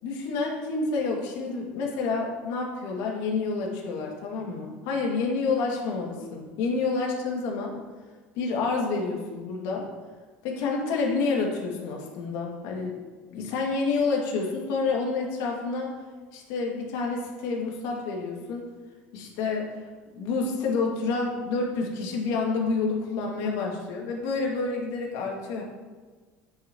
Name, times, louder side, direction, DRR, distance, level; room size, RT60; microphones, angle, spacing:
voice 1, 0.0-7.7 8.4-9.8 10.4-12.9 13.3-15.9 16.3-18.7 19.1-19.7 20.1-25.6, left 4 dB, 70° left, -1 dB, 2.3 m, -28 dB
9.4 x 9.3 x 3.1 m, 1.4 s
supercardioid pair, 85°, 7 cm